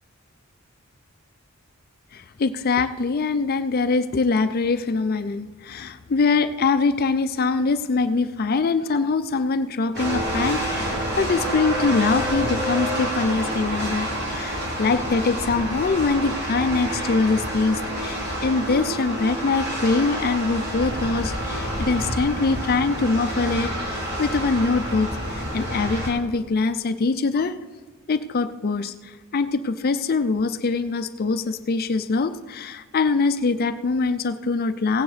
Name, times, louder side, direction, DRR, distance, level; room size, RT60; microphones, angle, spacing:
voice 1, 2.1-27.5 28.1-28.9 29.3-35.0, left 4 dB, 45° left, 11 dB, 0.4 m, -23 dB
sound 1, 9.9-26.1, equal, 50° right, 3.0 m, -28 dB
16.5 x 9.5 x 4.1 m, 1.4 s
head